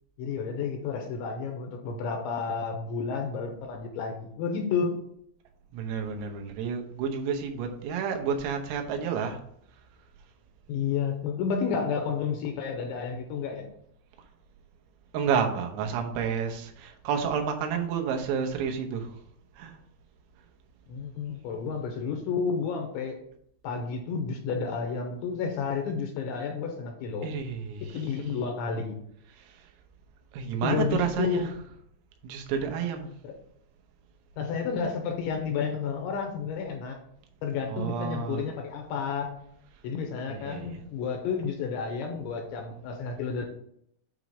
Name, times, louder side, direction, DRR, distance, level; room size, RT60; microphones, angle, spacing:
voice 1, 0.2-5.0 10.7-13.7 20.9-23.2 23.6-27.3 27.8-29.0 30.6-31.5 33.2-33.3 34.4-37.0 37.4-39.3 39.8-43.5, left 5 dB, 80° left, 3 dB, 2.8 m, -31 dB
voice 2, 5.7-9.4 15.1-19.2 19.6-19.8 27.2-28.3 29.4-29.5 30.3-31.7 32.2-33.1 37.7-38.5 40.3-40.8, right 6 dB, 85° right, 3 dB, 3.7 m, -30 dB
8.8 x 3.0 x 6.2 m, 0.69 s
omnidirectional pair, 5.9 m